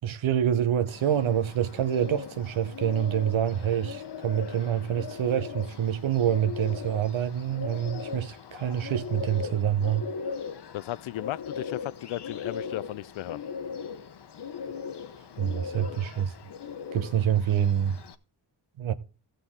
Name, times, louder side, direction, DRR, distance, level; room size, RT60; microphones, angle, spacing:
voice 1, 0.0-10.0 15.4-16.3 16.9-18.0 18.8-18.9, right 9 dB, 75° right, 1.0 m, -26 dB
Bird, 0.9-18.1, left 6 dB, 60° left, 1.0 m, -39 dB
voice 2, 10.7-13.4, left 15 dB, 75° left, 0.5 m, -35 dB
15.5 x 6.6 x 3.7 m
cardioid pair, 50°, 47 cm